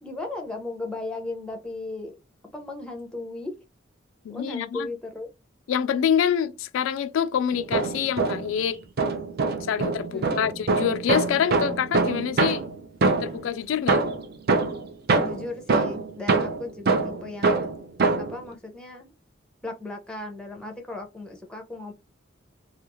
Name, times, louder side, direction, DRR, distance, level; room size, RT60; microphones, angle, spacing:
voice 1, 0.0-2.2 2.5-3.5 4.3-5.3 10.1-10.4 15.2-17.7 18.2-19.1 19.6-21.9, left 2 dB, 5° left, 0.6 m, -36 dB
voice 2, 4.2-4.9 5.7-8.8 9.6-12.6 13.2-14.0, left 8 dB, 80° left, 0.3 m, -26 dB
sound 1, 7.5-8.6 9.0-13.5 13.9-18.4, right 3 dB, 50° right, 0.5 m, -24 dB
2.4 x 2.4 x 2.9 m
head